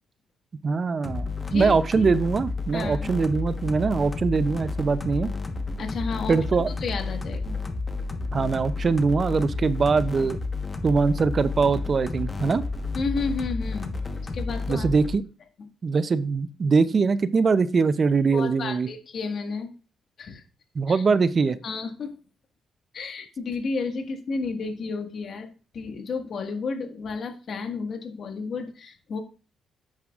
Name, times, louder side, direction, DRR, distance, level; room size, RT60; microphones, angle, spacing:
voice 1, 0.6-5.3 6.3-6.7 8.3-10.4 10.8-12.6 14.7-15.2 15.8-18.9 20.7-21.6, right 4 dB, 40° right, 15 dB, 0.5 m, -22 dB
sound 1, 1.0-15.2, left 3 dB, 25° left, 1.2 m, -31 dB
voice 2, 1.5-2.1 2.7-3.1 5.8-7.6 12.9-13.9 14.3-14.9 18.3-19.7 20.2-20.4 20.9-21.0 21.6-22.2 22.9-29.2, left 4 dB, 60° left, 5 dB, 1.6 m, -32 dB
9.8 x 7.3 x 2.4 m, 0.35 s
cardioid pair, 80°, 0 cm